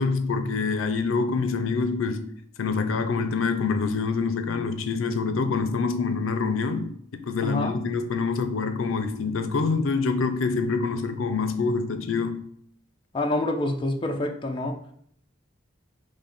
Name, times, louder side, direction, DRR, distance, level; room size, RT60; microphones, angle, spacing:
voice 1, 0.0-2.3 2.6-12.5, left 4 dB, 85° left, 0.5 m, -26 dB
voice 2, 7.4-7.7 13.1-14.8, left 1 dB, 25° left, 0.5 m, -27 dB
6.0 x 2.1 x 4.1 m
head